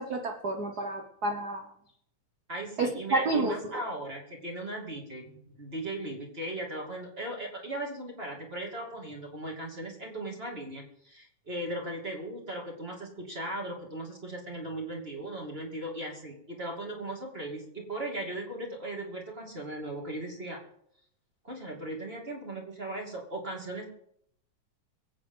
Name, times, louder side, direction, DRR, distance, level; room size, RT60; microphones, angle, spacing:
voice 1, 0.0-1.7 2.8-3.5, right 2 dB, 80° right, 4 dB, 0.8 m, -30 dB
voice 2, 2.5-20.6 21.4-23.8, right 1 dB, 20° right, 0 dB, 2.5 m, -38 dB
23.5 x 8.6 x 3.9 m, 0.70 s
omnidirectional pair, 3.4 m